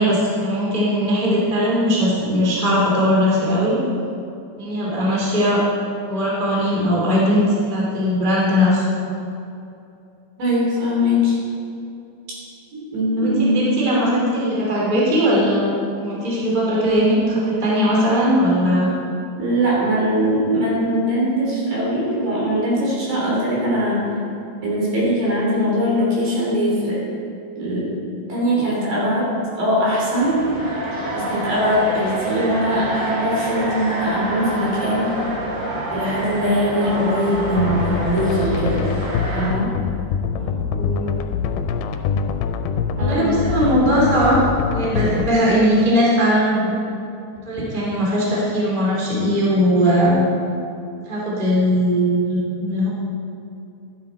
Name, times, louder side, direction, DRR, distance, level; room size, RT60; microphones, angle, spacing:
voice 1, 0.0-3.8 4.6-5.6 6.1-8.8 13.2-18.9 40.3-40.5 40.8-41.1 43.0-44.4 44.7-46.8 47.5-50.3 51.1-52.9, equal, 15° right, -6 dB, 2.1 m, -19 dB
voice 2, 10.4-11.4 12.9-13.5 19.4-24.1 24.6-27.0 27.6-28.0 28.3-30.4 31.1-35.1 35.9-38.8 39.3-39.7 43.0-43.3, equal, 65° right, -6 dB, 5.0 m, -21 dB
sound 1, 30.1-39.5, right 1 dB, 35° right, 2.6 m, -27 dB
sound 2, 37.4-45.3, left 6 dB, 85° left, 2.6 m, -24 dB
13.0 x 9.8 x 4.2 m, 2.7 s
omnidirectional pair, 4.4 m